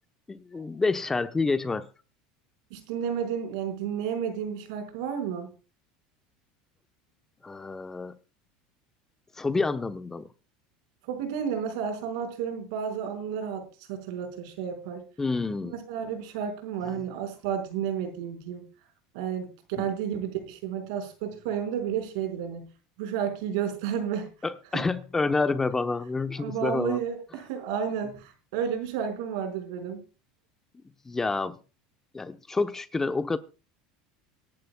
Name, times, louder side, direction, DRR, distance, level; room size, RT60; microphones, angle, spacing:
voice 1, 0.3-1.9 7.4-8.2 9.4-10.3 15.2-15.7 24.4-27.0 31.1-31.6 32.1-33.4, left 3 dB, 15° left, 0.9 m, -28 dB
voice 2, 2.7-5.5 11.0-15.0 15.6-18.6 19.1-22.7 23.0-24.3 24.7-24.9 26.4-30.0, right 8 dB, 75° right, 5.2 m, -32 dB
24.5 x 11.5 x 2.3 m
supercardioid pair, 120°, 3 cm